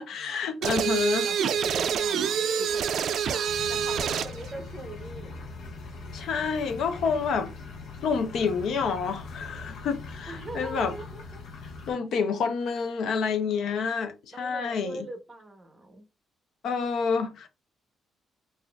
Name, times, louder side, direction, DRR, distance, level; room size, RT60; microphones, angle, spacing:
voice 1, 0.0-1.3 6.1-7.5 8.0-10.9 11.9-15.1 16.6-17.5, left 5 dB, 60° left, 0.5 m, -28 dB
sound 1, 0.6-4.4, right 7 dB, 55° right, 0.3 m, -27 dB
voice 2, 1.2-5.4 10.3-11.4 14.3-16.0, right 2 dB, 15° right, 0.7 m, -41 dB
sound 2, 3.4-11.9, left 3 dB, 80° left, 0.8 m, -41 dB
4.1 x 2.4 x 2.3 m
cardioid pair, 170°, 0 cm